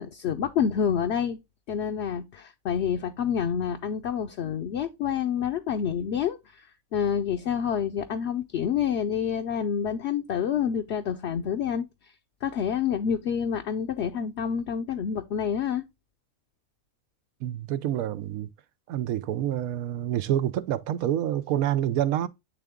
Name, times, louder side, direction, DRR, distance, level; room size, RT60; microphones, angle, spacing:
voice 1, 0.0-1.4 1.7-6.7 6.9-11.8 12.4-15.8, left 8 dB, 60° left, 0.8 m, -28 dB
voice 2, 17.4-18.5 18.9-22.3, right 11 dB, 90° right, 1.0 m, -27 dB
9.0 x 3.5 x 3.6 m
omnidirectional pair, 1.4 m